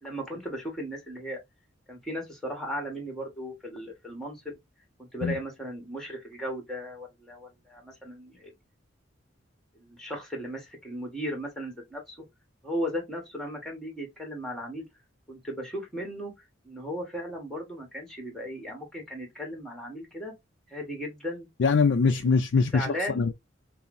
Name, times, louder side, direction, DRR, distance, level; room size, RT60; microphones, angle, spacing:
voice 1, 0.0-1.4 1.9-4.4 5.0-8.5 9.7-12.2 12.6-14.9 15.3-16.3 16.6-20.3 20.7-21.5 22.0-22.1 22.7-23.2, equal, 5° left, 1.3 m, -36 dB
voice 2, 21.6-23.3, left 5 dB, 65° left, 0.4 m, -23 dB
5.4 x 2.0 x 2.5 m
head